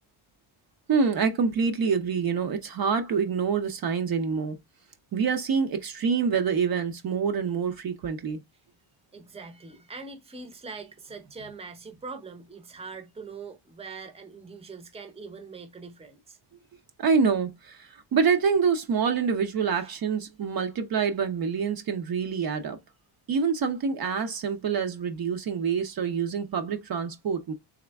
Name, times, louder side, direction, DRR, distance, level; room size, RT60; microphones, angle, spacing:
voice 1, 0.9-4.6 5.1-8.4 17.0-22.8 23.3-27.5, right 6 dB, 45° right, 0.7 m, -26 dB
voice 2, 9.1-16.4 19.8-19.9, right 4 dB, 10° right, 0.7 m, -42 dB
3.6 x 3.1 x 3.4 m
cardioid pair, 120°, 50 cm